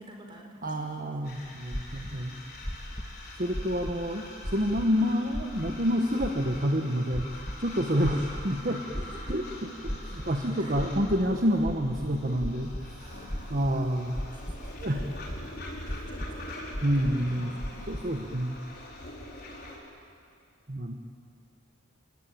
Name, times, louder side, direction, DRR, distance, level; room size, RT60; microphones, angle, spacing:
voice 1, 0.0-1.0 8.1-8.4 9.0-9.5 10.5-10.8 13.0-13.7 14.2-14.7 15.6-16.6 17.0-17.9, equal, 25° right, 1 dB, 4.2 m, -50 dB
voice 2, 0.6-2.4 3.4-7.3 7.6-8.8 9.3-13.1 13.5-14.2 14.8-15.1 15.9-16.0 16.8-17.5 17.9-18.6 20.7-20.9, equal, 40° right, 3 dB, 1.3 m, -28 dB
sound 1, 1.2-19.8, left 1 dB, 45° left, 5.1 m, -44 dB
sound 2, 1.7-2.1 2.6-3.1 3.5-4.1 4.4-4.9 5.3-5.8 6.2-6.6 7.1-7.6 8.0-8.6 8.9-9.4 9.8-10.4 10.7-11.2 11.6-12.8 13.3-13.7 14.2-14.7 15.0-15.4 15.8-16.3 16.7-17.3 17.6-18.0, equal, 15° left, 1.5 m, -35 dB
29.5 x 18.5 x 9.1 m, 2.4 s
head